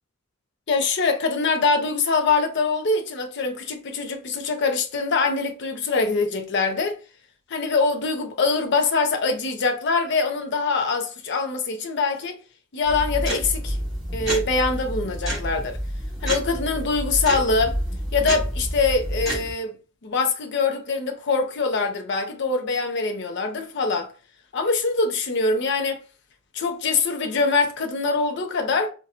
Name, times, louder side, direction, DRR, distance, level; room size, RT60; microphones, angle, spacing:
voice 1, 0.7-7.0 7.5-12.3 12.7-13.8 14.1-15.8 16.2-17.8 18.1-19.7 20.0-24.1 24.5-26.0 26.5-28.9, left 4 dB, 60° left, 0.6 m, -23 dB
sound 1, 12.8-19.5, equal, 5° right, 1.8 m, -29 dB
4.2 x 2.2 x 2.5 m
head